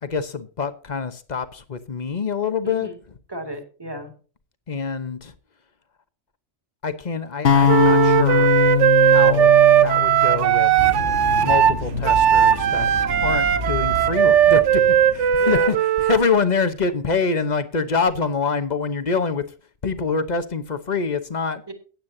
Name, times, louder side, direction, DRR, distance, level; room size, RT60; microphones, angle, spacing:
voice 1, 0.0-2.9 4.7-5.3 6.8-8.6 9.0-9.5 9.8-10.8 11.4-12.9 13.2-14.8 15.1-19.4 19.8-21.6, left 5 dB, 40° left, 1.0 m, -25 dB
voice 2, 2.6-3.0 3.3-4.1 15.4-15.8 21.7-21.8, right 1 dB, 20° right, 2.2 m, -34 dB
sound 1, 7.4-11.6, left 7 dB, 60° left, 0.9 m, -21 dB
Wind instrument woodwind instrument, 7.7-16.2, right 10 dB, 75° right, 1.0 m, -17 dB
sound 2, 10.8-15.8, equal, 55° right, 3.9 m, -31 dB
16.0 x 9.4 x 2.7 m
omnidirectional pair, 1.2 m